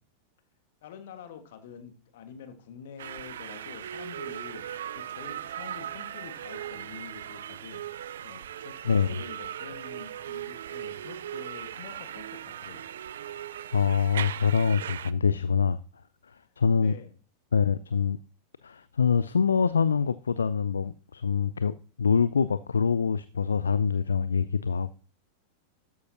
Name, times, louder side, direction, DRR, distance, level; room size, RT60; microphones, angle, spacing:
voice 1, 0.8-12.8 16.8-17.2, left 7 dB, 55° left, 1.7 m, -47 dB
sound 1, 3.0-15.1, right 10 dB, 60° right, 0.4 m, -38 dB
voice 2, 8.8-9.2 13.7-15.8 16.6-16.9 17.5-18.2 18.6-24.9, left 6 dB, 70° left, 0.4 m, -25 dB
13.0 x 9.4 x 2.8 m
figure-of-eight pair, 90°, 0 cm